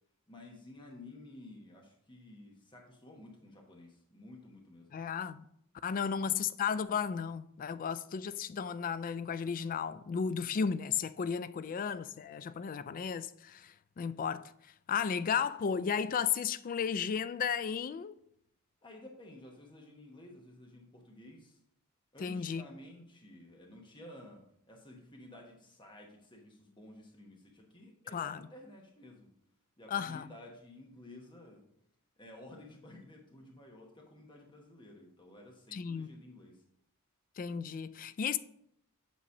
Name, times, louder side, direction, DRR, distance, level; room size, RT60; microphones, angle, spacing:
voice 1, 0.3-4.9 5.9-6.3 11.6-11.8 18.8-21.6 22.1-29.3 29.8-31.6 32.2-36.6, left 1 dB, 20° left, 1.1 m, -53 dB
voice 2, 4.9-5.4 5.8-14.5 14.9-18.1 22.2-22.6 28.1-28.4 29.9-30.3 35.7-36.1 37.4-38.4, left 7 dB, 40° left, 0.3 m, -34 dB
8.3 x 3.1 x 6.4 m
head